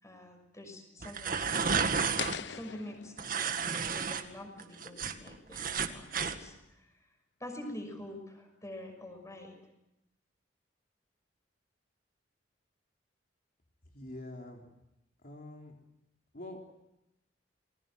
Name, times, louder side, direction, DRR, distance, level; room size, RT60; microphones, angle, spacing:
voice 1, 0.0-1.9 2.4-6.9 7.4-9.6, left 1 dB, 15° left, 5 dB, 6.3 m, -46 dB
sound 1, 1.0-2.4 3.2-4.2 4.6-6.4, right 5 dB, 50° right, 2.0 m, -31 dB
sound 2, 2.2-5.2, left 8 dB, 70° left, 0.8 m, -43 dB
voice 2, 13.9-14.6 15.2-15.7 16.3-16.6, left 1 dB, 50° left, 1 dB, 3.7 m, -45 dB
28.5 x 21.0 x 7.8 m, 0.89 s
head